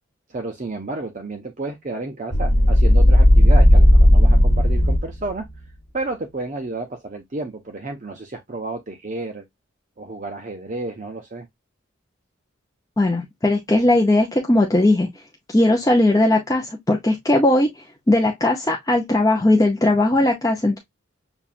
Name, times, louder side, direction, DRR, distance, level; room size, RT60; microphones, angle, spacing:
voice 1, 0.3-5.5 5.9-9.4 10.0-11.5, right 2 dB, 40° right, 0.6 m, -31 dB
sound 1, 2.3-5.3, equal, 55° left, 1.3 m, -13 dB
voice 2, 13.0-15.1 15.5-17.7 18.1-20.8, left 1 dB, 15° left, 0.6 m, -18 dB
6.9 x 2.4 x 2.4 m
head